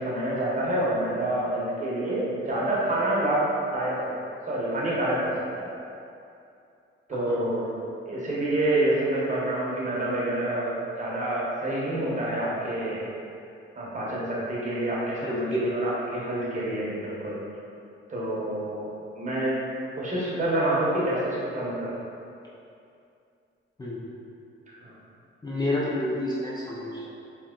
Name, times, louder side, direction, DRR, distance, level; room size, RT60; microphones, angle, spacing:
voice 1, 0.0-3.4 3.7-4.1 4.5-5.7 7.1-7.7 8.1-13.1 13.7-17.4 18.1-19.6 20.0-22.0 24.7-24.9, right 1 dB, 35° right, -6 dB, 1.0 m, -27 dB
voice 2, 7.1-7.7 15.2-15.8 23.8-24.1 25.4-27.1, left 1 dB, 20° left, -7 dB, 0.6 m, -30 dB
3.3 x 2.9 x 3.7 m, 2.6 s
cardioid pair, 120°, 21 cm